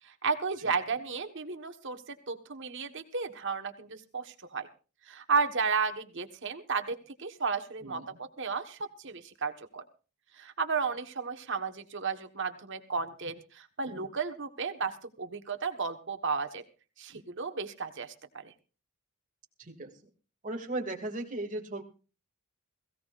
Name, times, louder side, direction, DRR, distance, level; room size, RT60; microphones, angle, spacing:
voice 1, 0.0-4.7 5.1-9.8 10.3-16.6 17.0-18.5, right 5 dB, 60° right, 7 dB, 1.4 m, -33 dB
voice 2, 19.6-19.9 20.4-21.8, right 2 dB, 40° right, 3 dB, 2.3 m, -36 dB
21.0 x 16.5 x 2.6 m, 0.35 s
head